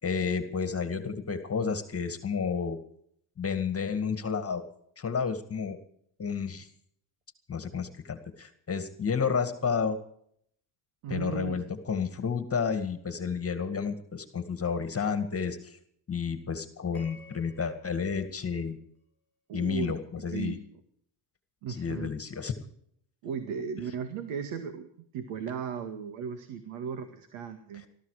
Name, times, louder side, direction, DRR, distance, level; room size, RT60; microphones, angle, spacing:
voice 1, 0.0-2.8 3.4-4.6 5.0-5.8 6.2-6.7 7.5-10.0 11.1-15.8 16.1-18.8 19.5-20.6 21.7-22.5, left 6 dB, 30° left, 8 dB, 2.1 m, -31 dB
voice 2, 11.0-11.6 19.5-19.9 20.3-20.6 21.6-22.1 23.2-24.9 25.1-27.8, right 6 dB, 75° right, 7 dB, 2.1 m, -36 dB
sound 1, 16.9-19.3, left 2 dB, 5° left, 6.6 m, -56 dB
20.0 x 14.0 x 5.0 m, 0.66 s
cardioid pair, 110°, 49 cm